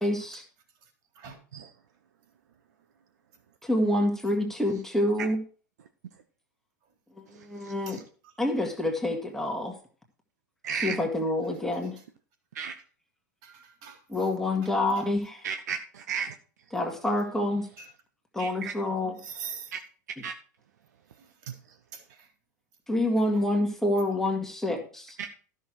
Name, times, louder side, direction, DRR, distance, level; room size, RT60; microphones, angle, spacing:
voice 1, 0.0-0.4 3.6-5.4 7.4-8.0 8.4-9.7 10.7-12.0 14.1-15.4 16.7-17.7 18.3-19.2 22.9-25.2, left 1 dB, 5° left, 2.2 m, -27 dB
voice 2, 7.6-8.0 10.6-11.0 12.5-12.7 15.4-16.3 18.4-18.7 19.7-19.8 20.2-20.3 25.2-25.3, right 7 dB, 65° right, 1.0 m, -34 dB
voice 3, 13.4-14.3 14.6-15.0 17.8-17.9 19.2-19.7 21.4-21.5 21.9-22.3, right 6 dB, 45° right, 3.7 m, -43 dB
13.5 x 6.5 x 4.8 m
figure-of-eight pair, 90°, 10 cm